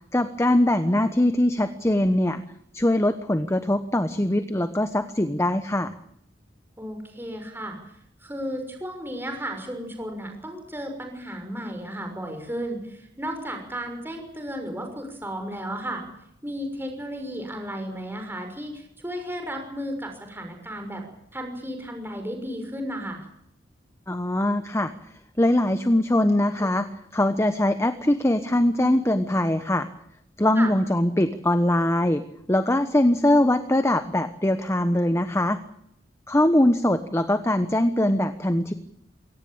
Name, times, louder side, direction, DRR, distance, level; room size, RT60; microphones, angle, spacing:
voice 1, 0.1-2.4 2.7-5.9 24.1-24.9 25.4-26.9 27.1-29.9 30.4-35.6 36.3-38.7, left 1 dB, 15° left, 10 dB, 1.1 m, -22 dB
voice 2, 6.8-7.8 8.2-16.0 16.4-21.0 21.3-23.2 30.6-30.7, equal, 10° right, 4 dB, 6.3 m, -34 dB
23.5 x 18.0 x 8.9 m, 0.73 s
head